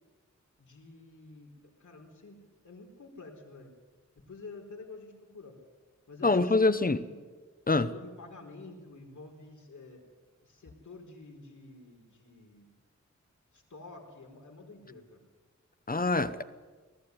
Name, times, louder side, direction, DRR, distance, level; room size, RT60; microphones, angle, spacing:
voice 1, 0.6-3.7 4.2-5.6 6.1-7.2 7.8-10.1 10.4-12.7 13.5-15.3, left 3 dB, 85° left, 4.6 m, -49 dB
voice 2, 6.2-7.0 7.7-7.9 15.9-16.4, left 3 dB, 30° left, 0.9 m, -25 dB
20.0 x 14.5 x 9.6 m
wide cardioid pair, 100°, 29 cm